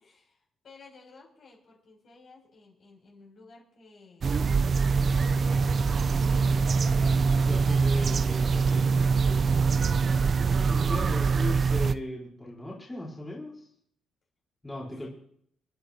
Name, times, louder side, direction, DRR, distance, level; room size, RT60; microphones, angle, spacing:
voice 1, 0.0-7.0 9.2-9.7, left 3 dB, 55° left, -3 dB, 6.8 m, -54 dB
sound 1, 4.2-11.9, right 5 dB, 45° right, 0.6 m, -24 dB
voice 2, 7.5-8.7 10.7-13.7 14.6-15.1, left 1 dB, 15° left, -4 dB, 4.1 m, -37 dB
28.0 x 10.5 x 2.9 m, 0.66 s
cardioid pair, 90°, 0 cm